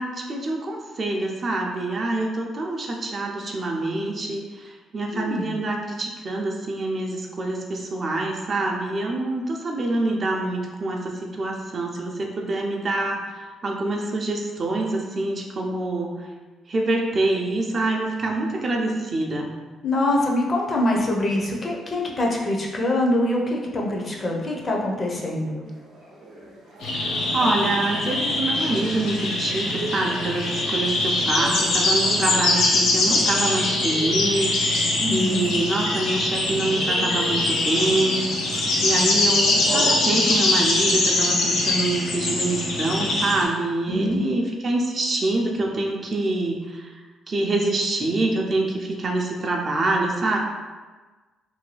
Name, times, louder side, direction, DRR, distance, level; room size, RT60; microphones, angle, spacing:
voice 1, 0.0-16.3 16.7-19.5 27.0-46.9 47.3-50.4, right 2 dB, 45° right, 0 dB, 0.4 m, -26 dB
voice 2, 5.1-5.5 19.8-25.7 35.0-35.4 43.9-44.2, left 1 dB, 35° left, -1 dB, 0.6 m, -24 dB
sound 1, 25.7-40.5, right 2 dB, 90° right, 0.6 m, -39 dB
sound 2, 26.8-43.4, left 2 dB, 85° left, 0.5 m, -23 dB
2.6 x 2.2 x 3.2 m, 1.3 s
cardioid pair, 90°, 0 cm